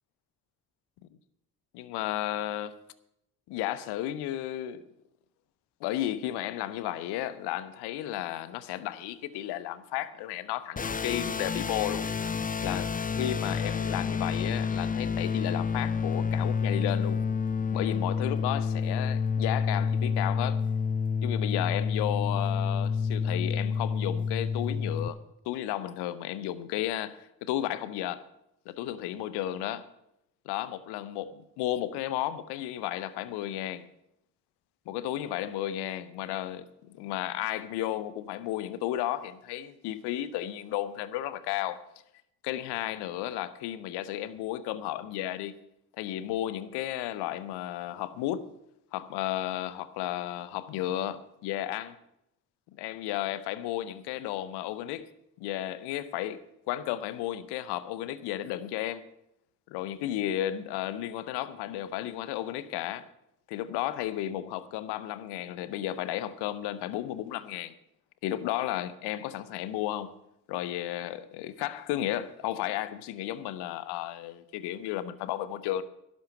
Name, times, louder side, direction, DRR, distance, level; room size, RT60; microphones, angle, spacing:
voice 1, 1.7-2.7 3.5-4.8 5.8-12.1 12.6-17.2 17.7-20.6 21.2-25.2 25.4-28.3 28.7-29.9 30.4-33.9 34.9-41.8 42.4-45.5 46.0-48.5 48.9-52.0 52.7-55.1 55.4-59.0 59.7-63.1 63.5-67.7 68.2-70.2 70.5-75.8, left 13 dB, 85° left, 0.8 m, -33 dB
sound 1, 10.8-25.1, left 5 dB, 20° left, 0.7 m, -29 dB
11.5 x 6.3 x 9.2 m
hypercardioid pair, 50°, 39 cm